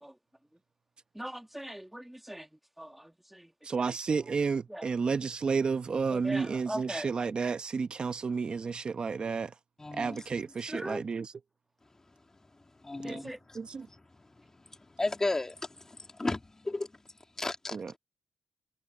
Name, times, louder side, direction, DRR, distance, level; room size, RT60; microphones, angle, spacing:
voice 1, 1.1-2.5 2.8-3.5 4.7-4.9 6.1-7.1 10.6-11.0 13.0-13.4, right 1 dB, 5° right, 2.7 m, -40 dB
voice 2, 3.6-9.5 9.9-11.3 13.0-13.2 13.5-13.9 17.7-18.0, right 5 dB, 50° right, 1.1 m, -31 dB
voice 3, 9.8-10.2 12.8-13.3 15.0-15.6 16.2-16.9 17.4-17.8, left 2 dB, 25° left, 3.4 m, -32 dB
supercardioid pair, 55°, 2 cm